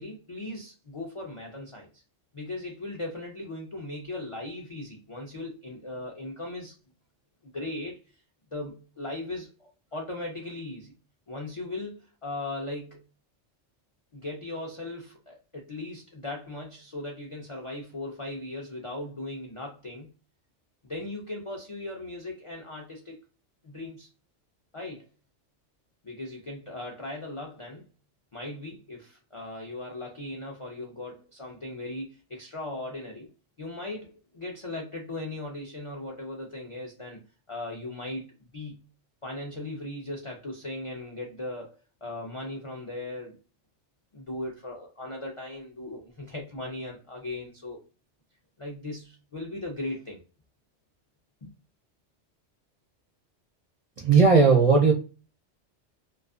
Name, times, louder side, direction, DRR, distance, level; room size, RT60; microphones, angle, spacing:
voice 1, 0.0-2.0 2.3-6.8 7.5-8.0 8.5-10.9 11.3-13.0 14.1-20.1 20.8-23.2 23.6-24.1 24.7-25.1 26.0-27.9 28.3-33.3 33.6-37.2 37.5-38.3 38.5-38.9 39.2-41.7 42.0-43.4 44.1-47.8 48.6-50.2 51.4-51.5, left 2 dB, 50° left, 0.3 m, -38 dB
voice 2, 54.0-54.9, right 4 dB, 45° right, 0.5 m, -17 dB
2.4 x 2.3 x 2.3 m
omnidirectional pair, 1.3 m